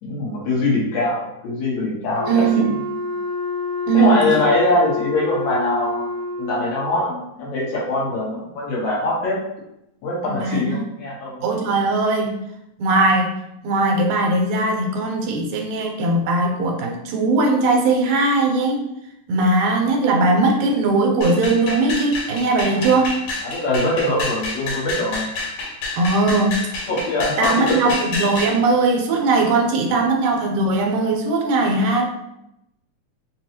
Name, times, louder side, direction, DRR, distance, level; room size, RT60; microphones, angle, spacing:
voice 1, 0.0-2.7 3.9-6.1 6.4-9.4 10.0-11.4 22.7-22.9 23.4-25.3 26.3-26.4 26.9-27.7, left 2 dB, 70° left, -6 dB, 2.4 m, -22 dB
Wind instrument woodwind instrument, 2.1-6.8, left 3 dB, 70° right, 1.4 m, -27 dB
voice 2, 2.3-2.7 3.9-4.2 10.3-10.8 11.4-12.4 12.8-13.3 13.6-18.8 19.3-23.2 26.0-26.6 27.4-32.1, right 3 dB, 85° right, 2 dB, 2.1 m, -19 dB
sound 1, 21.2-28.6, left 3 dB, 90° left, 2.8 m, -28 dB
5.3 x 2.3 x 2.9 m, 0.83 s
omnidirectional pair, 3.5 m